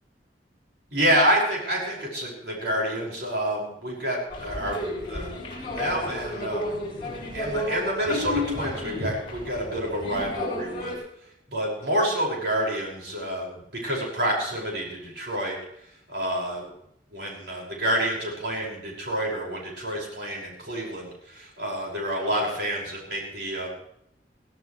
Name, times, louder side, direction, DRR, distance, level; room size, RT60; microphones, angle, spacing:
voice 1, 0.9-6.7 7.3-11.0 11.5-15.6 16.1-16.7 17.1-23.7, right 1 dB, 70° right, -3 dB, 5.6 m, -28 dB
sound 1, 4.3-10.9, left 1 dB, 30° left, 7.4 m, -32 dB
20.0 x 17.5 x 3.2 m, 0.74 s
head